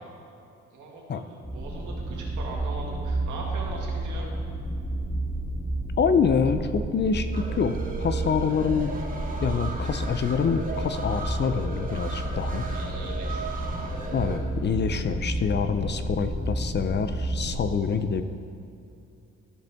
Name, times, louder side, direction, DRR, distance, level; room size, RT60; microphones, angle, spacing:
voice 1, 0.7-4.3 12.7-14.1, right 3 dB, 80° right, -2 dB, 1.8 m, -41 dB
sound 1, 1.4-17.6, right 1 dB, 5° right, 1.0 m, -31 dB
voice 2, 6.0-9.0 9.4-12.6 14.1-18.2, left 6 dB, 35° left, 10 dB, 0.4 m, -26 dB
sound 2, 7.3-14.4, right 3 dB, 30° right, 1.4 m, -37 dB
13.0 x 5.1 x 3.5 m, 2.5 s
cardioid pair, 90°, 30 cm